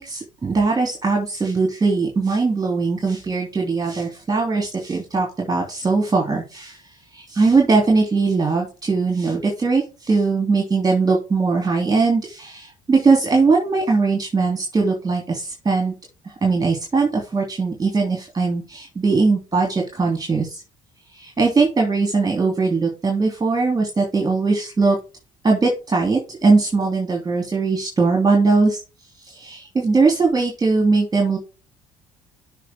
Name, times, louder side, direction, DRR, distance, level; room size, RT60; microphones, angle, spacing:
voice 1, 0.0-6.8 7.1-15.9 16.4-20.5 21.1-25.0 25.4-28.8 29.3-31.4, right 4 dB, 25° right, 0 dB, 3.0 m, -20 dB
8.3 x 6.0 x 3.7 m, 0.30 s
hypercardioid pair, 55°, 17 cm